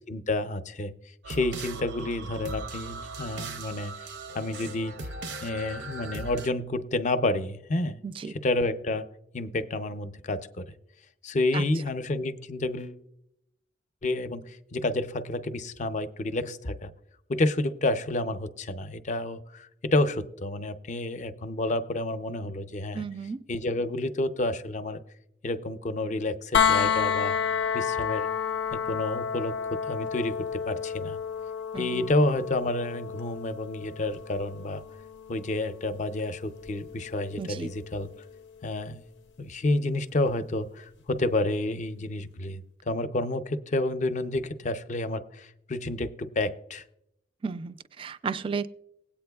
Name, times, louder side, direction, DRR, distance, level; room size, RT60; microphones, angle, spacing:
voice 1, 0.1-0.9 1.3-3.9 4.3-5.0 5.4-8.0 8.4-9.1 9.3-10.7 11.2-13.0 14.0-16.9 17.3-23.0 23.5-25.0 25.4-27.4 27.7-28.3 28.7-31.2 31.8-34.8 35.3-38.1 38.6-39.0 39.4-46.8, left 2 dB, 45° left, 11 dB, 0.5 m, -29 dB
sound 1, 1.2-6.5, right 3 dB, 80° right, 0.6 m, -39 dB
voice 2, 8.0-8.3 11.5-11.6 22.9-23.4 31.7-32.1 37.4-37.7 47.4-48.7, right 5 dB, 30° right, 13 dB, 0.3 m, -34 dB
sound 2, 26.5-38.4 40.3-40.4, left 7 dB, 90° left, 0.6 m, -31 dB
19.5 x 8.6 x 2.3 m, 0.81 s
head